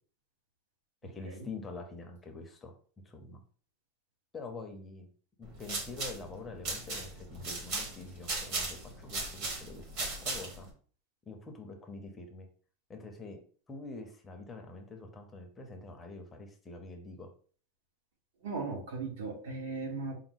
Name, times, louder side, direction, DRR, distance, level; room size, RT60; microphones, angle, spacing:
voice 1, 1.0-2.7 3.0-3.4 4.3-5.1 5.4-10.7 11.3-12.5 12.9-13.4 13.7-17.3, left 3 dB, 10° left, 4 dB, 0.5 m, -45 dB
sound 1, 5.4-10.7, right 3 dB, 40° right, 1.0 m, -37 dB
voice 2, 18.4-20.1, right 4 dB, 75° right, 1 dB, 1.4 m, -37 dB
4.6 x 2.2 x 3.9 m, 0.43 s
supercardioid pair, 180°, 0 cm